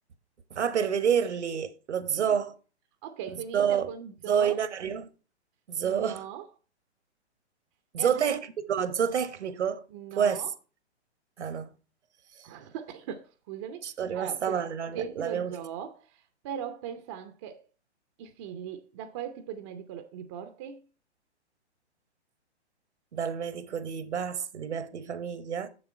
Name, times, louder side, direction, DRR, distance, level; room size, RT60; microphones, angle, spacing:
voice 1, 0.5-2.6 3.5-3.9 4.3-5.1 5.7-6.2 7.9-8.4 8.7-9.8 10.2-10.4 11.4-11.7 13.8-15.6 23.1-25.7, right 8 dB, 80° right, 1.1 m, -28 dB
voice 2, 3.0-4.6 5.8-6.5 8.0-8.2 9.9-10.5 12.4-13.8 14.1-14.7 14.9-17.6 18.2-20.8, right 9 dB, 25° right, 0.5 m, -39 dB
6.9 x 6.7 x 4.3 m
hypercardioid pair, 135°, 34 cm